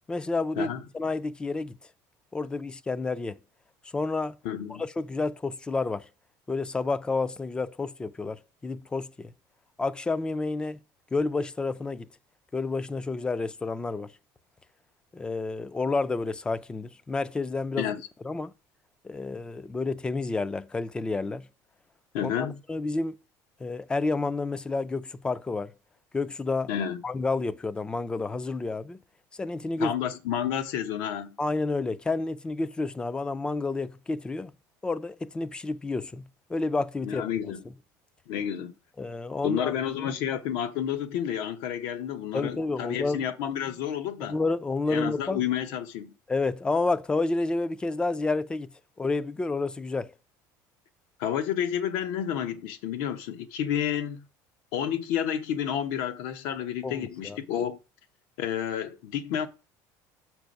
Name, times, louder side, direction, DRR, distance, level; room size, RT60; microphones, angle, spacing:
voice 1, 0.1-1.8 2.3-3.4 3.9-4.4 4.8-6.1 6.5-9.3 9.8-10.8 11.1-12.1 12.5-14.1 15.1-17.9 18.2-18.5 19.0-21.5 22.2-22.3 22.7-23.2 23.6-25.7 26.1-26.7 27.0-29.0 29.4-29.9 31.4-34.5 34.8-37.3 39.0-39.7 42.3-43.2 44.2-45.4 46.3-48.7 49.0-50.1 56.8-57.4, left 3 dB, 10° left, 0.3 m, -30 dB
voice 2, 4.4-4.8 17.8-18.0 22.1-22.6 26.7-27.0 29.8-31.4 37.0-37.6 38.3-38.7 39.4-44.4 44.9-46.1 51.2-54.2 54.7-57.8 58.4-59.5, left 9 dB, 75° left, 0.9 m, -30 dB
6.8 x 4.6 x 5.2 m
cardioid pair, 150°, 8 cm